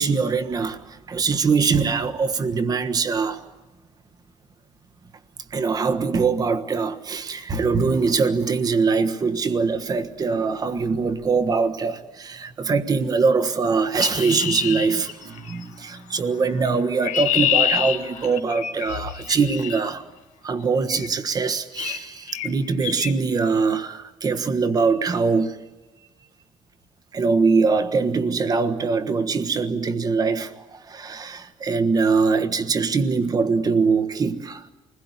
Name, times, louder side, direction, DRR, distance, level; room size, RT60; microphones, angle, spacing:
voice 1, 0.0-3.4 5.5-20.0 20.4-25.6 27.1-34.6, right 4 dB, 30° right, 1.4 m, -22 dB
Chirp tweet, 14.0-15.6 16.6-19.8 20.9-21.2 21.8-22.0 22.3-22.5 22.8-23.1, left 11 dB, 70° left, 1.7 m, -26 dB
29.0 x 21.0 x 9.7 m
cardioid pair, 165°, 13 cm